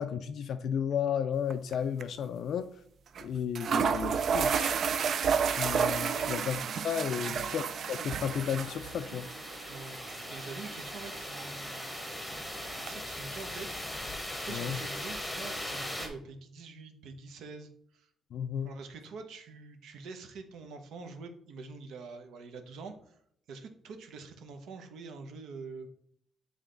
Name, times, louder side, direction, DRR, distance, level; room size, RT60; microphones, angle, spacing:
voice 1, 0.0-2.7 3.2-4.8 5.5-9.3 14.5-14.8 18.3-18.7, left 8 dB, 50° left, 9 dB, 0.3 m, -33 dB
sound 1, 1.5-1.7 2.0-2.1 3.2-3.3 3.6-12.9, right 6 dB, 45° right, 0.4 m, -32 dB
sound 2, 7.5-16.1, left 1 dB, 5° left, 0.9 m, -40 dB
voice 2, 9.7-11.9 12.7-13.9 14.4-18.1 18.6-23.2 23.5-25.9, right 4 dB, 70° right, 6 dB, 0.8 m, -45 dB
8.2 x 3.3 x 3.9 m, 0.66 s
cardioid pair, 175°, 0 cm